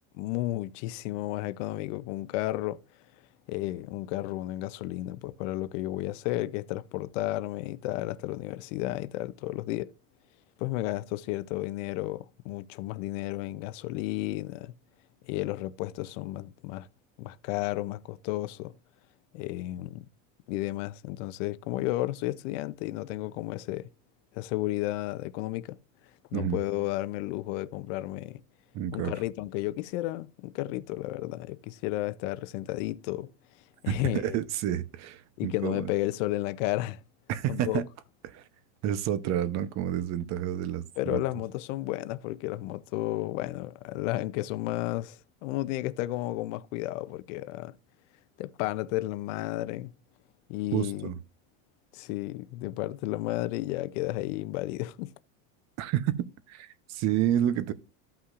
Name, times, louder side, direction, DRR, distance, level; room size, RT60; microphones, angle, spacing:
voice 1, 0.1-2.8 3.5-9.9 10.6-14.7 15.2-16.9 17.2-18.7 19.3-20.1 20.5-23.9 24.3-25.8 26.3-28.4 28.9-33.3 33.8-34.4 35.4-37.0 37.5-37.8 41.0-47.7 48.4-49.9 50.5-51.1 51.9-55.1, left 16 dB, 70° left, 0.7 m, -32 dB
voice 2, 28.7-29.1 33.9-35.9 37.3-37.8 38.3-38.4 38.8-41.2 50.7-51.2 55.8-57.7, right 11 dB, 45° right, 0.8 m, -29 dB
14.5 x 5.7 x 2.5 m
supercardioid pair, 135°, 39 cm